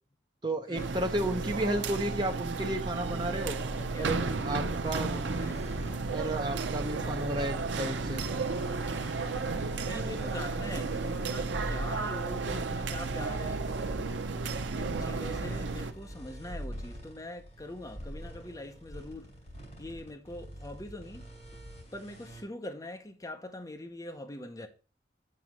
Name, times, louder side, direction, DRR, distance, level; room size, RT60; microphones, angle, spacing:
voice 1, 0.4-3.6 4.0-4.2 4.4-5.1 6.1-8.2, right 1 dB, 25° right, 0.8 m, -32 dB
sound 1, 0.7-15.9, right 3 dB, 85° right, 0.6 m, -33 dB
voice 2, 3.7-5.7 9.3-13.6 14.7-19.4 19.8-21.6 21.9-24.7, left 1 dB, 20° left, 0.8 m, -43 dB
sound 2, 4.9-22.4, equal, 40° left, 4.6 m, -44 dB
7.7 x 4.2 x 6.3 m
head